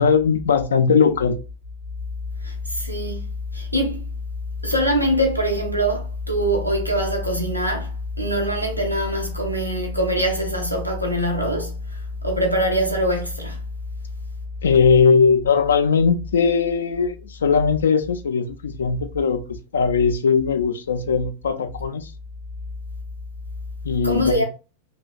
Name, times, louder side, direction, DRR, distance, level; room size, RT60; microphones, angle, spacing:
voice 1, 0.0-1.4 14.6-19.4 19.7-22.1 23.8-24.4, left 5 dB, 65° left, 0.3 m, -19 dB
voice 2, 2.4-3.3 3.5-4.0 4.6-13.6 24.0-24.4, equal, 90° right, 0.7 m, -23 dB
3.0 x 2.2 x 2.3 m
figure-of-eight pair, 90°, 0 cm